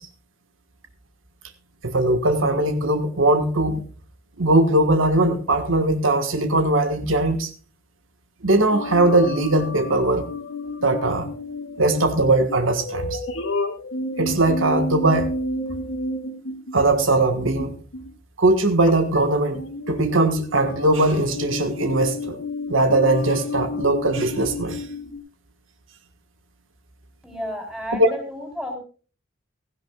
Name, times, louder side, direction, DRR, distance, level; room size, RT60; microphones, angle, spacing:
voice 1, 1.8-3.8 4.4-7.5 8.4-10.3 10.8-11.3 11.8-13.2 14.2-15.4 16.7-17.8 18.4-22.4 22.7-24.8 27.9-28.1, right 2 dB, 85° right, 1.5 m, -20 dB
sound 1, 8.7-18.1 18.9-19.2 19.5-25.2, left 2 dB, 85° left, 1.9 m, -31 dB
voice 2, 27.2-28.8, equal, 5° right, 3.7 m, -32 dB
16.5 x 15.5 x 2.3 m
head